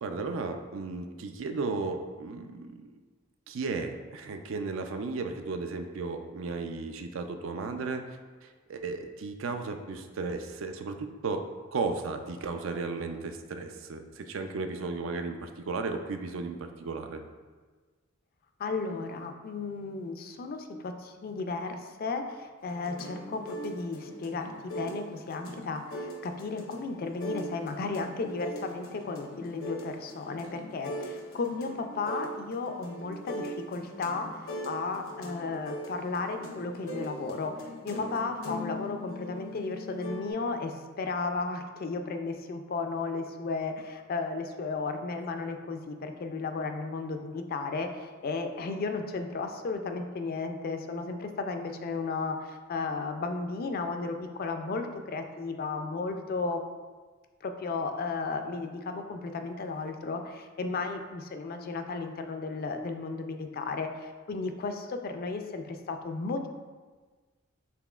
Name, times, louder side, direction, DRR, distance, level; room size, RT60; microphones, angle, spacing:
voice 1, 0.0-2.9 3.5-8.2 8.7-17.2, right 4 dB, 70° right, 7 dB, 0.4 m, -35 dB
voice 2, 18.6-56.6 57.4-66.5, left 4 dB, 45° left, 6 dB, 0.4 m, -34 dB
sound 1, 22.6-40.3, equal, 80° left, 0.7 m, -40 dB
5.8 x 3.6 x 2.4 m, 1.4 s
head